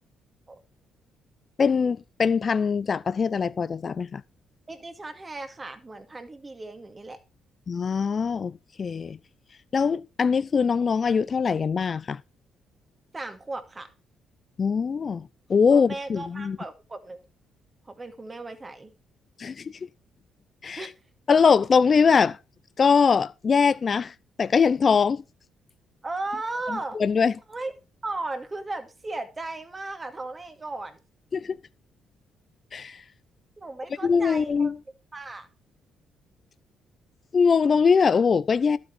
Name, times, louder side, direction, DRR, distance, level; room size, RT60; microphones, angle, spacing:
voice 1, 1.6-4.2 7.7-9.2 9.7-12.2 14.6-16.6 19.4-19.7 20.6-20.8 21.3-22.4 22.8-24.1 24.4-25.2 27.0-27.3 31.3-31.6 32.7-33.0 34.0-34.8 37.3-38.8, left 5 dB, 45° left, 0.6 m, -22 dB
voice 2, 4.7-7.2 13.1-13.9 15.7-17.2 17.8-18.9 20.8-20.9 26.0-27.0 27.5-27.7 28.0-31.0 33.6-34.7 35.1-35.5, right 2 dB, 25° right, 2.4 m, -36 dB
12.5 x 8.0 x 4.4 m
supercardioid pair, 70°, 0 cm